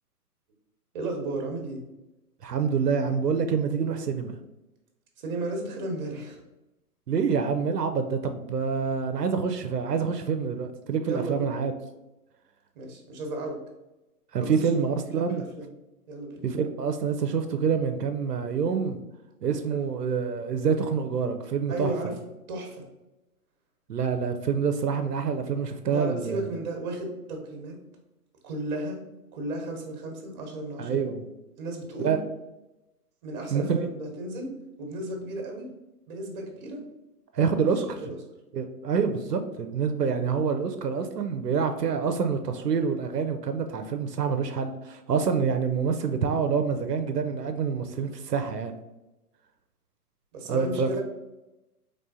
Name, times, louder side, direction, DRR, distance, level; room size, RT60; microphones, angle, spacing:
voice 1, 0.9-1.8 5.2-6.4 11.1-11.5 12.7-13.6 14.4-14.5 15.2-15.7 16.1-16.4 19.7-19.8 21.7-22.1 22.5-22.8 25.9-27.8 28.4-29.0 29.3-31.1 31.6-32.1 33.2-34.5 34.8-35.7 36.1-36.8 38.0-38.2 50.3-51.0, right 2 dB, 30° right, 2 dB, 0.9 m, -34 dB
voice 2, 2.4-4.4 7.1-11.7 14.3-15.4 16.4-19.0 19.4-22.1 23.9-26.4 30.8-31.3 32.0-32.2 33.5-33.9 37.3-38.0 38.5-48.7 50.5-50.9, right 6 dB, 85° right, 7 dB, 0.6 m, -27 dB
4.2 x 3.3 x 2.6 m, 0.97 s
figure-of-eight pair, 125°, 47 cm